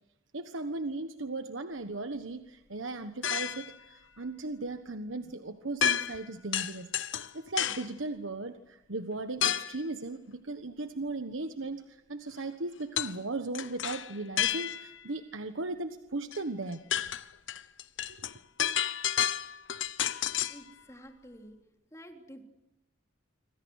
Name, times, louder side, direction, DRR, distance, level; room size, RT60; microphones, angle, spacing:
voice 1, 0.3-6.9 7.3-16.8, right 2 dB, 85° right, 8 dB, 1.3 m, -37 dB
sound 1, 3.2-3.7 5.8-6.3 6.5-7.9 9.4-9.8 13.0-13.2 13.5-15.0 16.3-16.4 16.7-20.6, left 10 dB, 75° left, 1.0 m, -31 dB
voice 2, 20.5-21.6 21.9-22.4, equal, 15° left, 3 dB, 3.7 m, -49 dB
27.0 x 25.0 x 6.5 m, 0.92 s
head